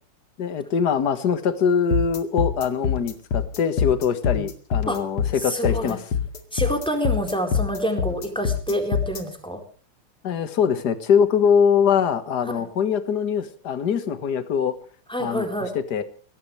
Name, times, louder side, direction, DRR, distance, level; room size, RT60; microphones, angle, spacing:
voice 1, 0.4-6.0 10.2-14.8 15.2-15.5 15.7-16.0, left 7 dB, 50° left, 10 dB, 2.0 m, -22 dB
sound 1, 1.9-9.2, left 7 dB, 90° left, 3.1 m, -24 dB
voice 2, 5.4-6.0 6.5-9.6 12.5-12.7 15.1-15.7, equal, ahead, 3 dB, 4.2 m, -27 dB
22.5 x 17.5 x 3.3 m, 0.41 s
omnidirectional pair, 2.4 m